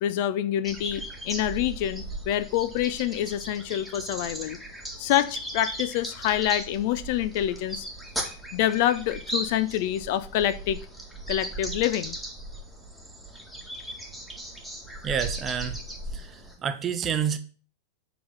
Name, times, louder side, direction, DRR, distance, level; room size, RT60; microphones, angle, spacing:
voice 1, 0.0-4.6 5.0-7.9 8.5-10.8 11.3-12.2, left 12 dB, 50° left, 0.5 m, -26 dB
sound 1, 0.6-16.6, right 1 dB, 5° left, 1.9 m, -37 dB
voice 2, 15.0-15.8 16.1-17.4, right 8 dB, 25° right, 0.8 m, -29 dB
7.7 x 4.1 x 6.8 m
figure-of-eight pair, 90°, 0 cm